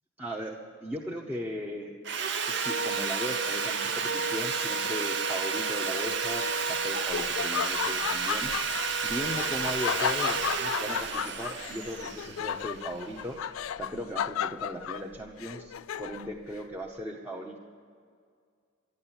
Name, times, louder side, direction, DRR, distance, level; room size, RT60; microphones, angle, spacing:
voice 1, 0.2-1.9 2.5-8.5 9.0-13.4 13.8-17.6, equal, 10° right, -3 dB, 0.8 m, -37 dB
Sawing, 2.0-13.1, right 5 dB, 60° right, 0.9 m, -31 dB
Laughter, 6.4-16.4, left 9 dB, 80° left, 0.3 m, -34 dB
12.0 x 10.5 x 8.8 m, 2.2 s
head